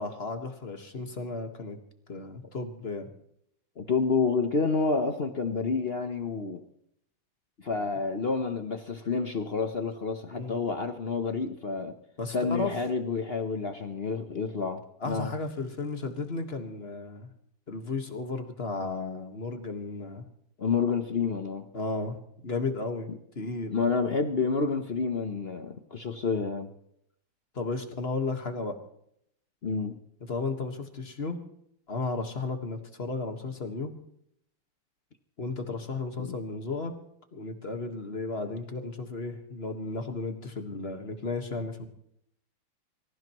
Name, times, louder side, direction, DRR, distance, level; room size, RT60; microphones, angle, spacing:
voice 1, 0.0-1.8 2.1-3.1 10.3-10.6 12.2-12.8 15.0-17.3 17.7-20.2 21.7-22.2 22.4-23.9 27.5-28.8 30.2-31.4 31.9-33.9 35.4-36.9 37.3-41.9, left 3 dB, 30° left, 6 dB, 1.5 m, -34 dB
voice 2, 3.8-6.6 7.6-11.9 12.3-15.3 20.6-21.7 23.7-26.7 29.6-30.0 36.2-36.4, left 4 dB, 65° left, 7 dB, 0.5 m, -29 dB
24.5 x 15.5 x 3.0 m, 0.72 s
omnidirectional pair, 2.4 m